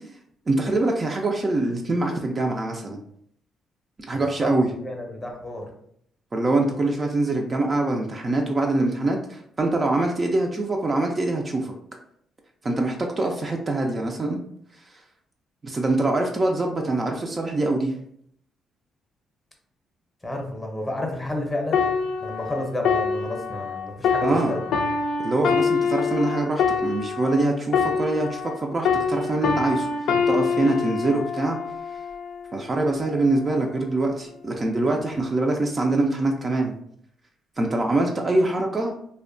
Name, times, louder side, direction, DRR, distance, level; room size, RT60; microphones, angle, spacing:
voice 1, 0.5-3.0 4.0-4.7 6.3-11.7 12.6-14.4 15.6-18.0 24.2-24.5 25.2-29.9 30.3-31.6 32.5-36.7 37.6-38.9, right 2 dB, 30° right, 1 dB, 0.3 m, -24 dB
voice 2, 4.8-5.7 20.2-24.6, left 1 dB, 15° left, 1 dB, 0.7 m, -31 dB
sound 1, 21.7-28.6 28.8-32.4 33.1-33.3, left 5 dB, 80° left, 0.3 m, -25 dB
2.6 x 2.1 x 2.5 m, 0.69 s
cardioid pair, 90°, 0 cm